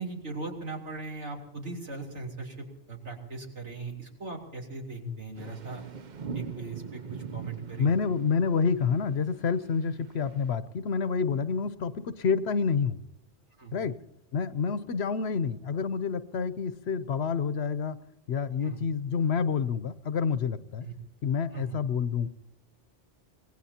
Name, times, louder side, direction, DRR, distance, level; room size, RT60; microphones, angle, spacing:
voice 1, 0.0-5.8 6.3-7.9 13.6-13.8 18.6-18.8 20.8-20.9 21.5-21.8, right 3 dB, 75° right, 0 dB, 3.8 m, -39 dB
sound 1, 5.4-10.5, right 5 dB, 45° right, 0.8 m, -42 dB
voice 2, 7.8-13.0 13.7-14.0 14.3-18.0 18.3-20.9 21.2-22.3, left 6 dB, 65° left, 14 dB, 1.0 m, -28 dB
25.5 x 19.0 x 2.8 m, 0.85 s
omnidirectional pair, 1.2 m